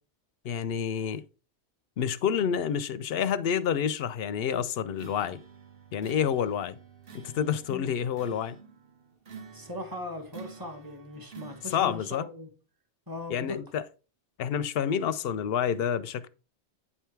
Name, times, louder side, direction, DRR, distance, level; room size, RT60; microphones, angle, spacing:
voice 1, 0.4-1.2 2.0-5.4 5.9-6.8 7.2-8.6 11.7-12.3 13.3-13.8 14.4-16.3, left 8 dB, 65° left, 0.7 m, -28 dB
sound 1, 4.9-12.1, right 6 dB, 55° right, 1.2 m, -49 dB
voice 2, 9.5-12.5 13.1-13.6, left 2 dB, 20° right, 1.5 m, -39 dB
8.7 x 3.4 x 4.5 m
omnidirectional pair, 1.2 m